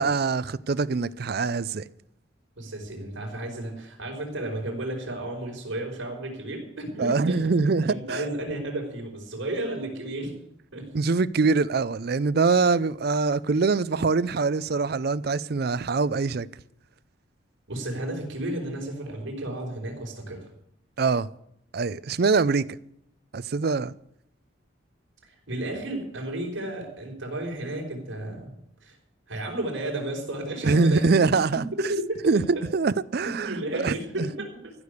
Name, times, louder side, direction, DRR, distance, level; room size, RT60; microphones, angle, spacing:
voice 1, 0.0-1.8 7.0-8.0 10.9-16.5 21.0-21.3 21.7-22.7 23.3-23.9 30.6-31.6 32.3-34.3, right 4 dB, 50° right, 0.5 m, -23 dB
voice 2, 2.5-10.3 10.7-10.9 12.5-12.6 17.7-20.5 25.5-28.5 28.8-29.0 29.3-32.2 32.5-32.6 33.2-34.7, right 1 dB, 80° right, 4.8 m, -33 dB
14.5 x 6.7 x 9.7 m
head